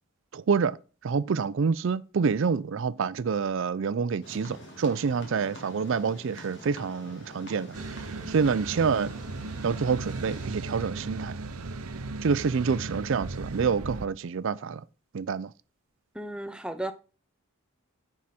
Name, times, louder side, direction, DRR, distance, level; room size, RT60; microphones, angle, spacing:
voice 1, 0.3-0.8 1.0-7.7 8.3-9.1 9.6-11.3 12.2-14.8 15.1-15.5, right 5 dB, 60° right, 0.4 m, -27 dB
sound 1, 4.2-10.5, equal, 55° left, 2.1 m, -46 dB
sound 2, 7.7-14.1, right 3 dB, 85° right, 0.7 m, -36 dB
voice 2, 16.2-16.9, right 1 dB, 5° right, 0.5 m, -34 dB
10.0 x 4.8 x 4.3 m
head